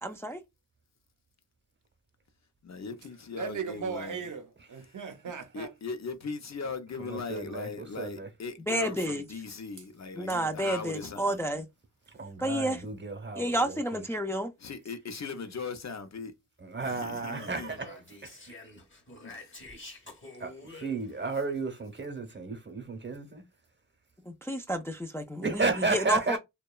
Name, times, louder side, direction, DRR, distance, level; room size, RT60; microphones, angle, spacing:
voice 1, 0.0-0.4 8.7-9.2 10.2-11.6 12.4-12.8 13.4-14.5 24.3-26.4, right 1 dB, 10° left, 0.3 m, -30 dB
voice 2, 2.6-4.2 5.3-11.4 14.6-16.3 16.8-17.8 19.2-19.7, left 4 dB, 55° left, 0.6 m, -39 dB
voice 3, 3.3-5.7, right 6 dB, 70° right, 0.5 m, -37 dB
voice 4, 7.0-8.3 12.2-14.0 16.6-18.6 20.4-23.4 25.4-26.4, right 3 dB, 35° right, 0.8 m, -33 dB
Speech, 17.5-21.4, left 2 dB, 40° left, 0.9 m, -48 dB
2.8 x 2.2 x 2.2 m
wide cardioid pair, 80°, 32 cm